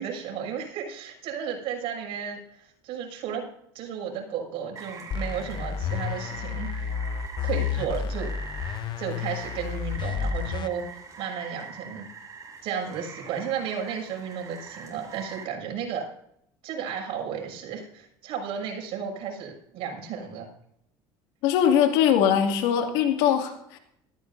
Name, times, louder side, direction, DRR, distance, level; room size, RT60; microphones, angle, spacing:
voice 1, 0.0-3.5 3.7-6.9 7.4-8.3 9.0-10.8 11.2-12.1 12.6-16.0 16.6-20.5, right 7 dB, 65° right, 1 dB, 6.6 m, -33 dB
Rain, 4.8-15.4, right 5 dB, 35° right, 6.4 m, -43 dB
sound 1, 5.1-10.7, left 7 dB, 45° left, 0.9 m, -31 dB
voice 2, 21.4-23.8, left 9 dB, 80° left, 4 dB, 2.4 m, -21 dB
19.0 x 15.0 x 2.7 m, 0.73 s
supercardioid pair, 100°, 10 cm